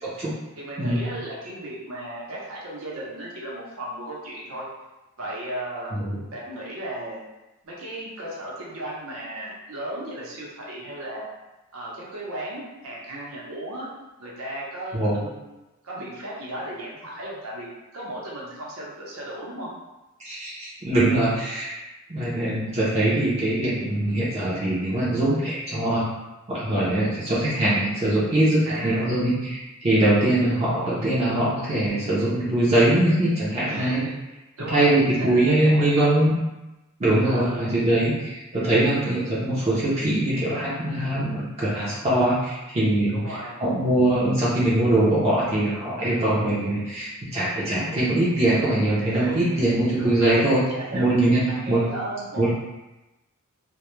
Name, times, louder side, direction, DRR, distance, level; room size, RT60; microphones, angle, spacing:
voice 1, 0.0-0.3 0.8-1.1 5.9-6.2 14.9-15.1 20.2-21.8 22.1-26.0 26.5-34.0 34.7-36.3 37.0-50.6 50.9-51.9 52.4-52.5, right 1 dB, 30° right, -8 dB, 0.5 m, -22 dB
voice 2, 0.6-4.7 5.2-5.9 6.3-7.2 7.6-11.3 11.7-13.9 14.2-15.4 15.8-17.7 17.9-19.7 24.9-25.0 28.7-29.1 33.7-34.1 34.6-36.1 37.2-37.7 43.1-43.6 49.2-49.7 50.0-51.2 51.5-52.5, right 1 dB, 85° right, -4 dB, 0.7 m, -35 dB
2.2 x 2.1 x 3.0 m, 1.0 s
head